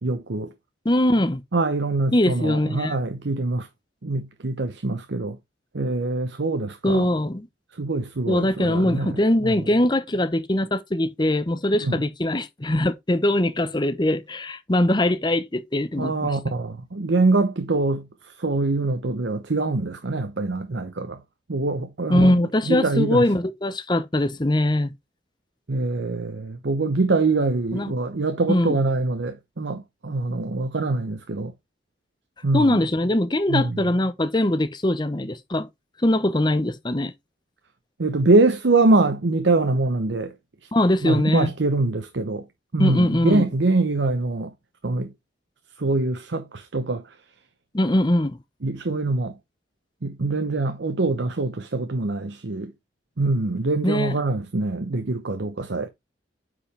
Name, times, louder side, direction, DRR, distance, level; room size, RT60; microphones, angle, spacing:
voice 1, 0.0-0.5 1.5-3.7 4.0-5.4 5.7-7.0 7.8-9.2 9.4-9.5 11.8-11.9 16.0-18.0 18.4-21.2 21.5-22.3 22.7-23.3 25.7-31.5 32.4-32.7 33.5-33.8 38.0-40.3 41.0-42.4 42.7-44.5 44.8-45.1 45.8-47.0 48.6-49.3 50.0-52.7 53.2-55.9, right 2 dB, 75° right, 0.8 m, -24 dB
voice 2, 0.8-1.4 2.1-3.0 6.8-7.5 8.3-16.4 22.1-24.9 27.7-27.9 28.5-28.8 32.5-35.7 36.0-37.1 40.7-41.5 42.8-43.5 47.7-48.4 53.8-54.2, left 1 dB, 25° left, 0.8 m, -22 dB
8.5 x 5.0 x 3.3 m
head